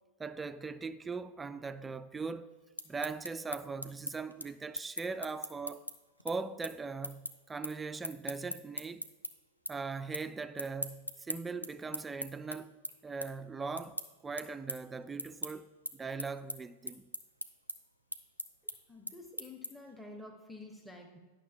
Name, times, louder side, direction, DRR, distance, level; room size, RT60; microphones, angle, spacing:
voice 1, 0.2-2.5 2.9-5.8 6.2-9.0 9.7-12.7 13.0-17.1, right 4 dB, 15° right, 0.3 m, -40 dB
sound 1, 2.6-9.3 9.6-10.3 10.5-19.9, equal, 90° left, 0.5 m, -41 dB
voice 2, 18.9-21.2, left 2 dB, ahead, 0.8 m, -49 dB
10.5 x 6.3 x 2.3 m
figure-of-eight pair, 90°, 0 cm